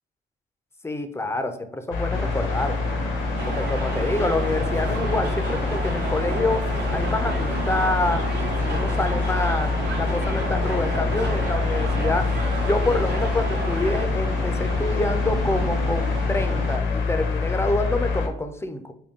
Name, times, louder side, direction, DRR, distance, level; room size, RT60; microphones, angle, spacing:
voice 1, 0.8-2.8 3.5-6.6 6.9-8.2 8.7-12.3 12.7-18.8, left 2 dB, 15° left, 7 dB, 0.4 m, -27 dB
sound 1, 1.9-18.3, left 4 dB, 75° left, 0.7 m, -26 dB
sound 2, 2.1-16.8, right 3 dB, 75° right, 0.8 m, -33 dB
sound 3, 3.4-14.1, right 3 dB, 60° right, 1.0 m, -33 dB
3.6 x 2.2 x 3.5 m, 0.69 s
cardioid pair, 90°, 20 cm